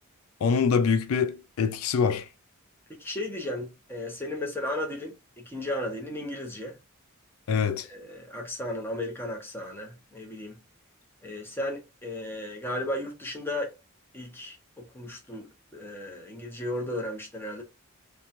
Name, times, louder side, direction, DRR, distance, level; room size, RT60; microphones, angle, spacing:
voice 1, 0.4-2.3 7.5-7.9, left 6 dB, 80° left, 0.4 m, -24 dB
voice 2, 2.9-6.8 7.5-10.6 11.2-13.7 14.1-15.5 15.7-17.6, left 1 dB, 10° left, 0.8 m, -35 dB
2.9 x 2.2 x 2.5 m
head